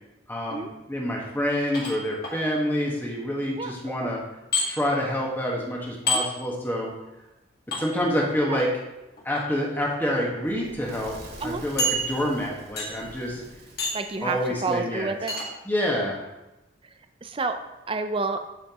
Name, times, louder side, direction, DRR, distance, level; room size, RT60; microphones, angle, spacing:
voice 1, 0.3-4.2 4.7-6.9 7.8-8.7 9.2-11.2 11.4-13.4 14.2-15.1 15.7-16.2, equal, 10° left, -2 dB, 1.5 m, -27 dB
sound 1, 1.7-2.4 4.5-4.7 6.1-6.2 7.7-7.8 9.2-9.4 10.2-10.3 10.6-10.7 11.8-12.4 12.8-13.1 13.8-14.1 15.3-15.5, left 1 dB, 50° left, 2.1 m, -27 dB
voice 2, 3.6-4.1 6.1-6.3 8.4-8.6 11.4-11.6 13.9-15.4 16.8-16.9 17.2-18.4, right 3 dB, 25° right, 7 dB, 0.5 m, -30 dB
Fire / Explosion, 10.4-15.3, right 1 dB, 55° right, 1.7 m, -47 dB
12.5 x 5.7 x 3.0 m, 0.98 s
head